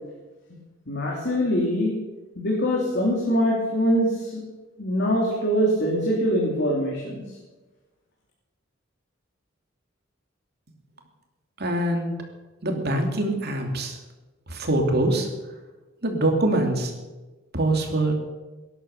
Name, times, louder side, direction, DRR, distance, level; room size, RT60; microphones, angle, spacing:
voice 1, 0.9-1.9 2.3-4.4 4.8-7.2, equal, 55° left, -2 dB, 3.1 m, -23 dB
voice 2, 11.6-12.1 12.6-14.0 14.5-15.3 16.0-16.9 17.5-18.1, right 1 dB, 50° right, 3 dB, 2.9 m, -24 dB
18.0 x 11.0 x 6.7 m, 1.2 s
head